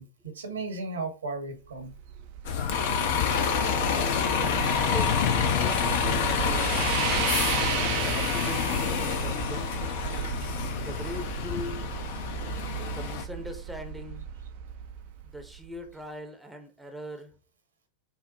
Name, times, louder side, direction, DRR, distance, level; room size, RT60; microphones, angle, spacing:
voice 1, 0.0-1.9 12.6-12.7, right 3 dB, 70° right, 6 dB, 0.9 m, -35 dB
sound 1, 1.7-15.8, right 10 dB, 45° right, 0.3 m, -34 dB
Bus, 2.5-13.2, left 7 dB, 50° left, 0.5 m, -27 dB
voice 2, 4.3-7.0 8.0-9.8 10.8-11.9 12.9-14.3 15.2-17.4, equal, 5° right, 5 dB, 0.7 m, -41 dB
5.6 x 2.0 x 2.8 m, 0.34 s
figure-of-eight pair, 90°, 0 cm